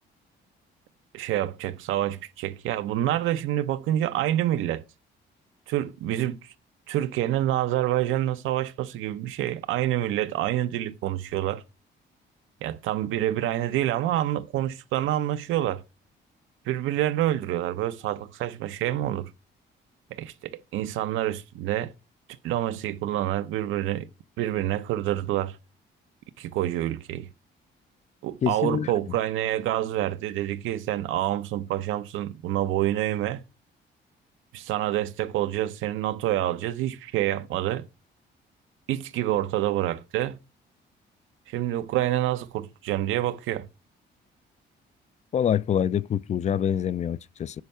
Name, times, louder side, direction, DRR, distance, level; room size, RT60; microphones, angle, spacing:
voice 1, 1.1-4.8 5.7-6.5 6.9-11.6 12.6-15.8 16.7-19.3 20.1-21.9 22.4-24.1 24.4-25.6 26.4-27.3 28.2-33.4 34.5-37.9 38.9-40.4 41.5-43.7, right 13 dB, 90° right, 0.6 m, -27 dB
voice 2, 28.4-28.9 45.3-47.6, left 9 dB, 35° left, 0.4 m, -25 dB
9.5 x 4.5 x 5.5 m
cardioid pair, 90°, 20 cm